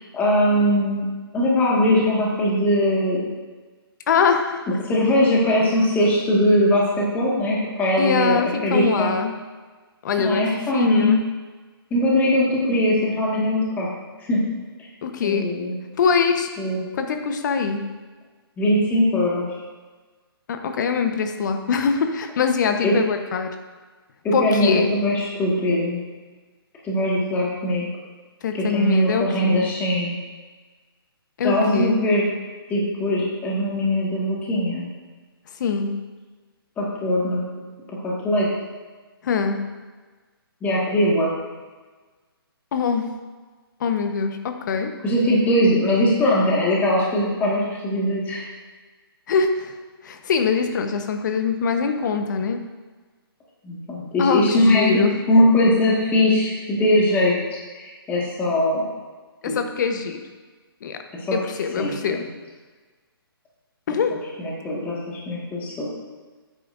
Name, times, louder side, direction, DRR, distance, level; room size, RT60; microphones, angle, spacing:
voice 1, 0.1-1.1 1.3-3.3 4.8-9.1 10.2-11.2 11.9-13.9 14.3-14.4 15.2-15.7 16.6-16.8 18.6-19.4 22.8-22.9 24.2-26.0 26.8-27.8 28.5-30.1 31.4-32.2 32.7-34.9 36.8-37.7 38.0-38.5 40.6-41.3 45.0-48.4 53.6-55.0 55.3-57.3 57.7-58.8 59.5-59.6 61.3-61.4 61.8-61.9 63.9-64.0 64.4-65.9, left 1 dB, 15° left, -5 dB, 1.8 m, -21 dB
voice 2, 4.1-4.6 8.0-9.3 10.0-11.2 15.0-15.5 16.0-16.5 17.0-17.9 20.5-23.5 24.3-24.9 28.4-29.7 31.4-32.0 35.6-35.9 39.2-39.6 42.7-43.1 43.8-44.9 49.3-49.7 50.0-52.6 54.2-55.1 59.4-60.2 60.8-61.0 61.3-62.2 63.9-64.2, left 6 dB, 50° left, 6 dB, 1.0 m, -23 dB
11.5 x 9.1 x 2.6 m, 1.4 s
hypercardioid pair, 150°, 13 cm